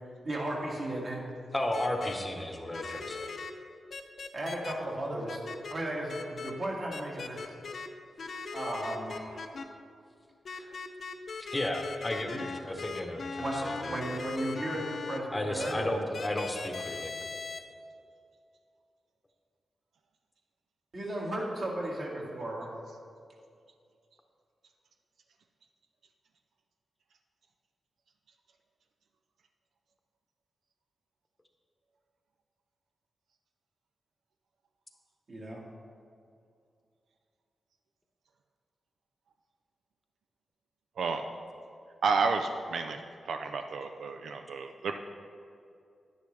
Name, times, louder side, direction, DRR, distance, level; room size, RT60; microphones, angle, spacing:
voice 1, 0.2-1.3 4.3-5.4 5.7-7.5 8.5-9.4 12.3-12.4 13.4-16.1 20.9-22.7 35.3-35.6, right 1 dB, 50° right, -3 dB, 2.0 m, -35 dB
voice 2, 1.5-3.3 10.5-10.8 11.5-14.2 15.3-17.1, left 1 dB, 15° left, 3 dB, 0.9 m, -34 dB
sound 1, 1.7-2.1 2.7-3.5 3.9-4.7 5.3-5.7 6.1-6.5 6.9-7.9 8.2-9.6 10.5-15.2 15.6-15.7 16.1-17.6, left 4 dB, 55° left, 0.6 m, -39 dB
voice 3, 42.0-43.0 43.2-45.0, right 4 dB, 85° right, 6 dB, 0.4 m, -31 dB
10.5 x 9.8 x 3.3 m, 2.4 s
wide cardioid pair, 105°, 0 cm